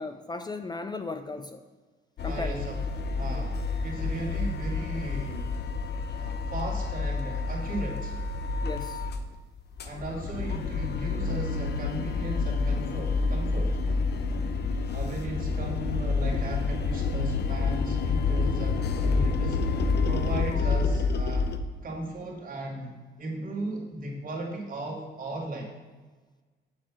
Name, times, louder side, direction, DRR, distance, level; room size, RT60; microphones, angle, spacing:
voice 1, 0.0-1.6 2.2-2.5 3.3-3.4 8.6-9.1, left 3 dB, 20° left, 9 dB, 0.5 m, -36 dB
sound 1, 2.2-9.3 9.6-21.6, left 4 dB, 55° left, 0.8 m, -28 dB
voice 2, 2.2-2.8 3.1-5.5 6.1-8.1 9.8-13.8 14.9-21.5 21.8-22.9 23.2-25.7, right 2 dB, 45° right, -1 dB, 2.6 m, -36 dB
8.9 x 4.2 x 7.3 m, 1.3 s
cardioid pair, 90°, 20 cm